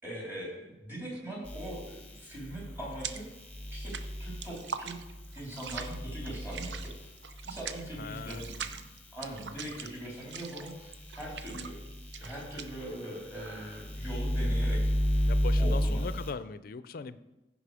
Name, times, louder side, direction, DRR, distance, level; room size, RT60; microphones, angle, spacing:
voice 1, 0.0-3.3 3.7-5.0 5.3-7.1 7.4-8.8 9.1-11.8 12.2-15.2 15.6-16.0, right 1 dB, 15° right, -4 dB, 3.7 m, -41 dB
sound 1, 1.0-1.4 1.7-3.4 3.7-15.2, right 7 dB, 80° right, 0.6 m, -43 dB
sound 2, 1.4-9.8 10.2-16.3, equal, 10° left, 1.2 m, -34 dB
voice 2, 7.9-8.5 15.2-17.2, left 4 dB, 55° left, 14 dB, 0.5 m, -39 dB
15.0 x 5.2 x 5.0 m, 0.99 s
head